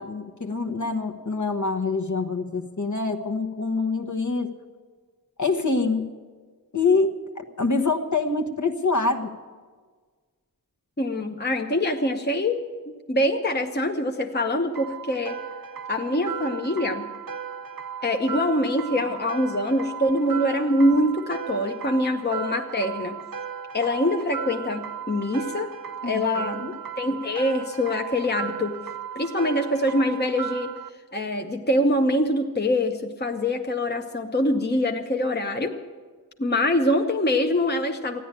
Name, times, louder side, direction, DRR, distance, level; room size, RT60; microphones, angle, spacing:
voice 1, 0.0-4.5 5.4-6.1 6.7-9.3 26.0-26.7, left 3 dB, 55° left, 3 dB, 1.1 m, -25 dB
voice 2, 11.0-15.4 15.9-17.1 18.0-23.2 23.7-25.7 26.0-26.6 27.0-28.8 29.2-30.7 31.1-35.8 36.4-38.2, left 1 dB, 30° left, 3 dB, 0.9 m, -24 dB
sound 1, 14.8-30.9, right 7 dB, 75° right, 0.7 m, -36 dB
14.5 x 10.0 x 8.9 m, 1.5 s
wide cardioid pair, 60°, 35 cm